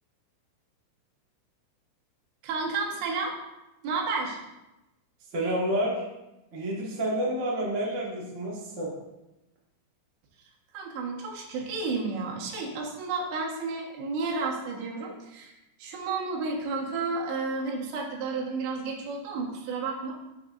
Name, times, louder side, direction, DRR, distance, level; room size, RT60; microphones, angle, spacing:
voice 1, 2.4-3.3 3.8-4.4 10.7-15.5 15.8-20.1, right 4 dB, 80° right, -1 dB, 3.7 m, -31 dB
voice 2, 5.3-6.0 6.5-8.9, right 1 dB, 40° right, -5 dB, 1.0 m, -29 dB
13.0 x 7.8 x 2.6 m, 0.97 s
omnidirectional pair, 5.1 m